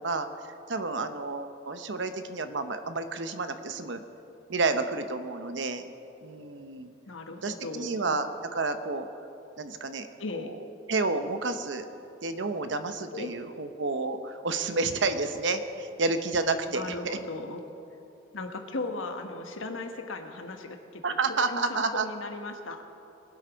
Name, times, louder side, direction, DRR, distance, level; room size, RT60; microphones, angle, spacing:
voice 1, 0.0-4.0 4.5-5.9 6.2-6.9 7.4-9.1 9.6-10.1 10.3-10.5 10.9-11.9 12.2-17.2 21.0-22.1, right 3 dB, 70° right, 9 dB, 0.9 m, -30 dB
voice 2, 7.1-8.2 10.2-10.5 13.1-13.3 16.7-17.6 18.3-21.2 21.5-22.8, left 2 dB, 90° left, 5 dB, 1.3 m, -37 dB
21.5 x 8.0 x 5.2 m, 2.8 s
head